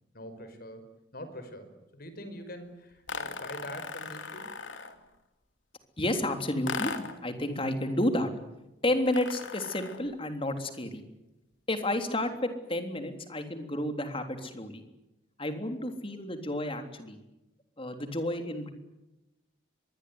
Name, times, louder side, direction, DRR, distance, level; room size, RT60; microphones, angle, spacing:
voice 1, 0.1-0.9 1.1-4.6, equal, 55° left, 10 dB, 5.3 m, -44 dB
sound 1, 3.1-5.0 6.7-7.3 9.1-10.1, left 4 dB, 85° left, 2.8 m, -38 dB
voice 2, 6.0-8.3 8.8-11.0 11.7-14.8 15.4-17.2 17.8-18.7, left 1 dB, 30° left, 7 dB, 3.5 m, -31 dB
24.5 x 21.5 x 9.7 m, 0.94 s
head